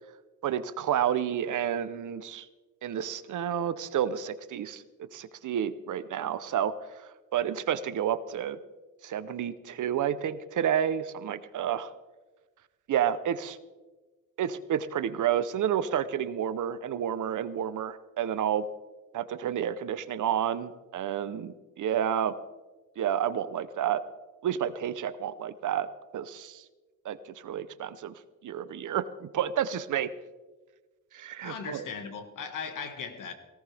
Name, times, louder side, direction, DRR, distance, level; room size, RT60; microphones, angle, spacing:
voice 1, 0.4-2.5 2.8-4.8 5.1-6.7 7.3-8.6 9.0-11.9 12.9-13.6 14.4-18.6 19.1-22.3 23.0-24.0 24.4-25.9 26.1-26.6 27.0-28.1 28.4-30.1 31.1-31.8, right 9 dB, 70° right, 14 dB, 0.8 m, -30 dB
voice 2, 31.4-33.3, left 6 dB, 75° left, 7 dB, 1.9 m, -38 dB
18.0 x 17.5 x 3.5 m, 1.2 s
cardioid pair, 115°, 32 cm